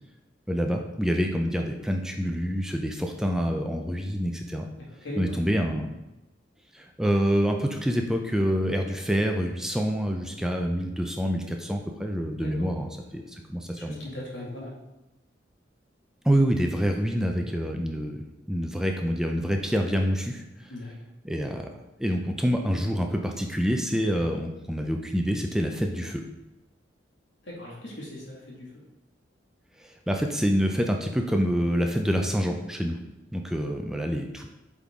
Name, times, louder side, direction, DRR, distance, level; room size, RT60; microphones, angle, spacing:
voice 1, 0.5-4.7 5.2-5.9 6.7-12.9 13.1-13.2 13.5-14.0 16.2-20.7 21.2-21.7 22.0-26.2 29.8-33.0 33.3-34.5, equal, 5° right, 3 dB, 0.5 m, -27 dB
voice 2, 4.8-5.7 12.3-12.8 13.2-14.7 20.7-21.1 27.4-28.8, left 1 dB, 85° left, -3 dB, 2.0 m, -40 dB
8.1 x 3.8 x 3.6 m, 0.98 s
head